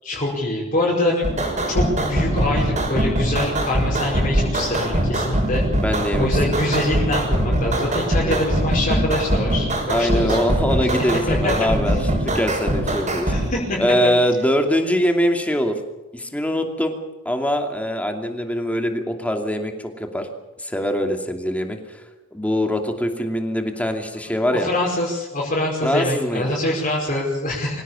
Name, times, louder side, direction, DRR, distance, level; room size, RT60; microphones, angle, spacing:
voice 1, 0.0-1.3 1.7-5.6 6.2-9.7 10.0-11.5 13.2-13.8 24.5-27.8, left 1 dB, 40° left, -4 dB, 5.1 m, -24 dB
sound 1, 1.2-13.4, right 1 dB, 40° right, 6.3 m, -22 dB
voice 2, 5.7-6.6 8.2-8.4 9.9-13.3 13.8-15.8 16.1-17.0 17.2-20.3 20.6-22.0 22.3-24.7 25.8-26.6, equal, 5° left, 4 dB, 2.7 m, -23 dB
25.0 x 17.0 x 7.1 m, 1.2 s
head